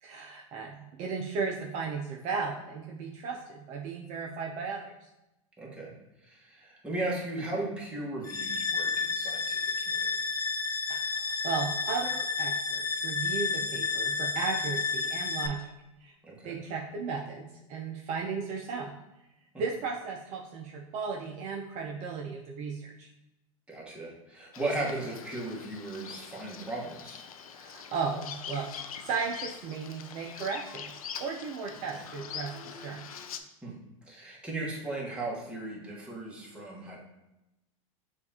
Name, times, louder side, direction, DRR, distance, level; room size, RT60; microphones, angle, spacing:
voice 1, 0.0-5.1 10.9-15.7 16.0-16.1 16.4-19.0 19.6-23.1 27.5-30.9 31.2-33.0, right 5 dB, 40° right, 0 dB, 0.6 m, -35 dB
voice 2, 5.6-5.9 6.2-10.2 16.2-16.6 19.5-19.6 23.7-27.2 33.6-33.7 34.0-37.0, right 2 dB, 5° right, -5 dB, 1.3 m, -36 dB
sound 1, 8.2-15.5, left 4 dB, 20° left, 0.4 m, -31 dB
Bird vocalization bird call bird song, 24.5-33.4, left 7 dB, 90° left, 0.4 m, -44 dB
6.7 x 2.5 x 2.8 m, 0.92 s
hypercardioid pair, 115°, 18 cm